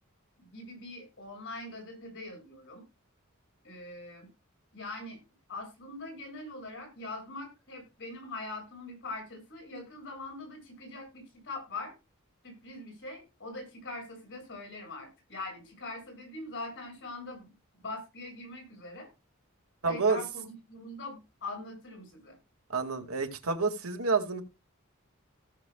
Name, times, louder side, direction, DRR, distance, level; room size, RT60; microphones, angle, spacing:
voice 1, 0.4-2.8 3.6-4.3 4.7-5.2 5.5-11.9 12.4-19.1 19.9-22.4, left 2 dB, 60° left, 7.2 m, -42 dB
voice 2, 19.8-20.2 22.7-24.4, right 4 dB, 75° right, 2.2 m, -28 dB
17.5 x 7.3 x 2.4 m
head